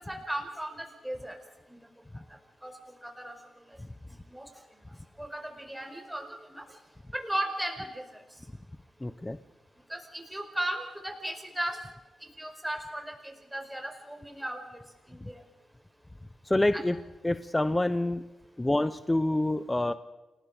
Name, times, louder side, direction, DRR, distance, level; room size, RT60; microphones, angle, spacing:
voice 1, 0.0-1.4 1.7-1.8 2.6-2.7 3.2-3.3 4.3-4.4 5.2-6.6 7.1-8.0 9.9-11.8 12.2-14.6 15.1-15.4 16.7-16.8, right 1 dB, 5° right, 4 dB, 5.0 m, -36 dB
voice 2, 9.0-9.4 16.5-17.0 17.2-18.2 18.6-19.9, left 1 dB, 15° left, 13 dB, 0.9 m, -27 dB
29.0 x 20.0 x 5.1 m, 1.1 s
cardioid pair, 90°, 0 cm